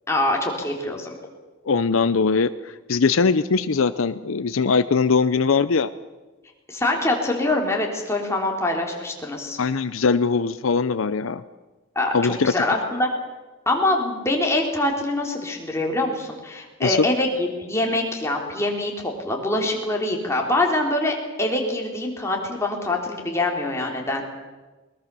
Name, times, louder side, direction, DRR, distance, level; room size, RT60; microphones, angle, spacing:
voice 1, 0.1-1.1 6.7-9.6 11.9-13.1 13.6-24.2, left 2 dB, 15° left, 0 dB, 3.4 m, -24 dB
voice 2, 1.7-5.9 9.6-11.4 12.1-12.5 16.8-17.1, left 4 dB, 85° left, 12 dB, 0.6 m, -21 dB
21.0 x 20.0 x 6.9 m, 1.2 s
head